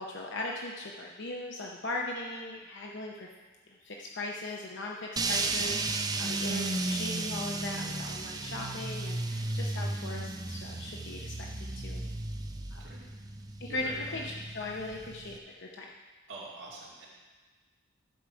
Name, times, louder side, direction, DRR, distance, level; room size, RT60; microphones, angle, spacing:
voice 1, 0.0-3.3 3.8-12.0 12.7-12.8 13.6-15.9, left 2 dB, 60° left, -1 dB, 0.8 m, -39 dB
sound 1, 5.2-15.4, right 2 dB, 20° right, 0.5 m, -34 dB
voice 2, 13.7-14.0 16.3-17.1, right 2 dB, 65° right, -5 dB, 2.5 m, -45 dB
12.0 x 4.7 x 6.3 m, 1.3 s
head